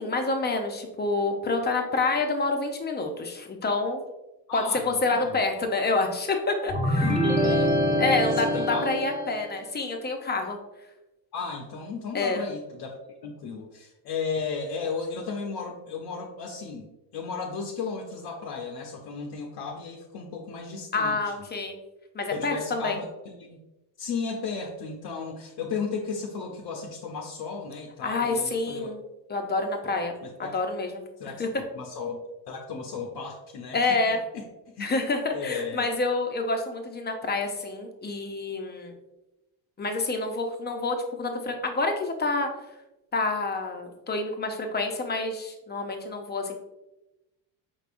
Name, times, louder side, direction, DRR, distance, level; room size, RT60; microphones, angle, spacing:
voice 1, 0.0-4.0 4.5-7.1 8.0-10.6 12.1-12.4 20.9-21.8 22.1-23.0 28.0-29.0 29.3-30.1 30.5-31.0 31.4-31.5 33.7-34.2 34.8-38.9 39.8-42.5 43.1-46.5, left 3 dB, 20° left, 4 dB, 0.6 m, -28 dB
voice 2, 4.5-5.4 7.0-8.0 8.4-9.0 11.3-21.2 22.3-23.6 24.0-28.9 30.2-30.5 31.2-34.4 34.7-34.9 35.3-35.9, left 5 dB, 55° left, 1 dB, 0.7 m, -35 dB
sound 1, 6.7-9.5, equal, 15° right, 1.0 m, -25 dB
5.3 x 3.4 x 2.5 m, 0.98 s
cardioid pair, 105°, 45 cm